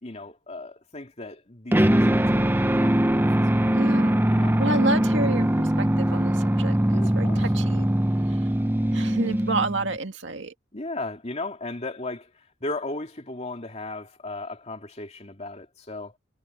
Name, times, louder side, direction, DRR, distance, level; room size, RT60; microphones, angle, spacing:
voice 1, 0.0-3.7 4.3-4.6 6.9-7.5 10.7-12.3 12.6-16.1, left 2 dB, 30° left, 2.8 m, -36 dB
sound 1, 1.7-10.0, right 1 dB, 10° right, 0.6 m, -22 dB
voice 2, 3.7-7.9 8.9-10.5, right 2 dB, 60° right, 2.2 m, -30 dB
head